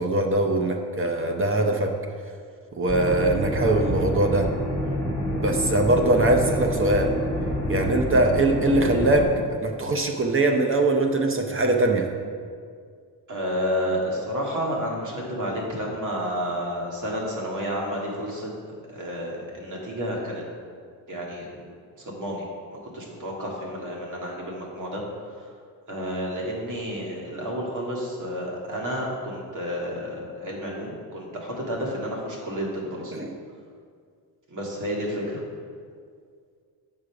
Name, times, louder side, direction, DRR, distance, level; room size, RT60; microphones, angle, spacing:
voice 1, 0.0-1.9 2.7-4.5 5.4-7.1 7.7-9.3 9.6-12.1 33.1-33.4, right 2 dB, 30° right, 3 dB, 0.7 m, -22 dB
sound 1, 2.9-9.2, equal, 10° left, 1.8 m, -28 dB
voice 2, 13.3-18.5 18.9-20.4 21.1-21.7 22.0-22.4 22.8-25.0 25.4-25.5 25.9-33.1 34.5-35.4, equal, 45° right, -2 dB, 2.0 m, -30 dB
7.9 x 5.4 x 4.8 m, 2.1 s
cardioid pair, 100°, 41 cm